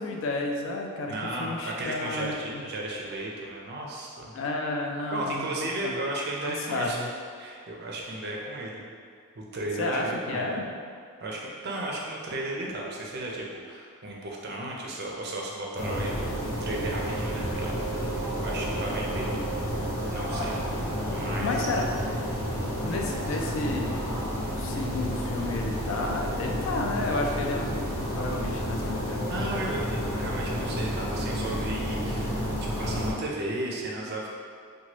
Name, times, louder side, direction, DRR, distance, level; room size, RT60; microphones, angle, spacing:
voice 1, 0.0-2.7 4.3-5.5 5.8-5.9 6.4-7.1 9.8-10.7 21.4-21.9 22.8-24.0 24.6-29.3, left 2 dB, 60° left, 1 dB, 0.3 m, -31 dB
voice 2, 1.1-4.3 5.1-7.0 7.4-8.9 9.4-10.6 11.2-16.1 16.4-19.3 20.1-20.6 21.1-22.0 29.3-32.3 32.6-34.3, right 1 dB, 50° right, -2 dB, 0.4 m, -34 dB
sound 1, 15.7-33.1, equal, 80° left, 0.7 m, -30 dB
3.0 x 2.2 x 2.9 m, 2.1 s
head